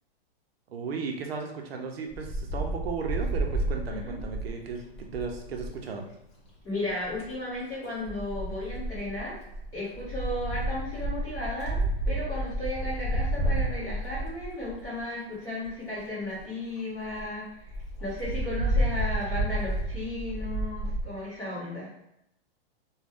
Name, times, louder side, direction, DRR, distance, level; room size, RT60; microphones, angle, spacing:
voice 1, 0.7-6.1, right 5 dB, 75° right, 2 dB, 0.7 m, -35 dB
Wind, 2.1-5.8 6.9-7.3 8.0-15.0 15.6-15.7 16.0-16.1 16.4-16.5 16.8-16.9 17.1-17.2 17.7-21.0, right 1 dB, 30° left, 0.6 m, -31 dB
voice 2, 6.6-9.3 9.7-17.5 18.0-21.9, left 1 dB, 10° left, -11 dB, 1.1 m, -34 dB
2.5 x 2.3 x 3.3 m, 0.81 s
hypercardioid pair, 180°, 31 cm